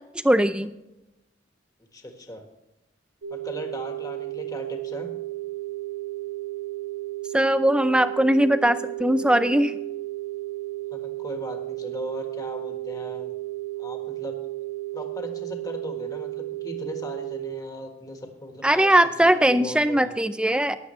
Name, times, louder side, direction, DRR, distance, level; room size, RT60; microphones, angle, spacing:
voice 1, 0.2-0.7 7.3-9.8 18.6-20.8, right 1 dB, 5° right, 11 dB, 0.5 m, -20 dB
voice 2, 1.9-2.4 3.3-5.1 10.9-13.3 13.8-14.4 14.9-20.2, left 1 dB, 20° left, 3 dB, 1.5 m, -38 dB
sound 1, 3.2-17.6, right 17 dB, 65° right, 1.0 m, -33 dB
15.5 x 10.5 x 3.2 m, 0.94 s
head